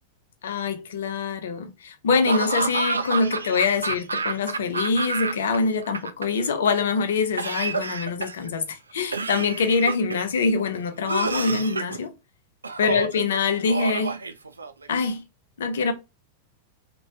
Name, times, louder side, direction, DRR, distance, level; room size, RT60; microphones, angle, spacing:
voice 1, 0.4-12.1 12.8-14.2 14.9-15.2 15.6-15.9, left 4 dB, 65° left, 0.5 m, -24 dB
Laughter / Cough, 2.2-5.6 5.8-6.7 7.4-8.5 9.1-10.3 11.1-12.0 12.6-13.2 13.7-14.9, right 4 dB, 80° right, 0.3 m, -29 dB
3.0 x 2.2 x 2.7 m
figure-of-eight pair, 90°, 0 cm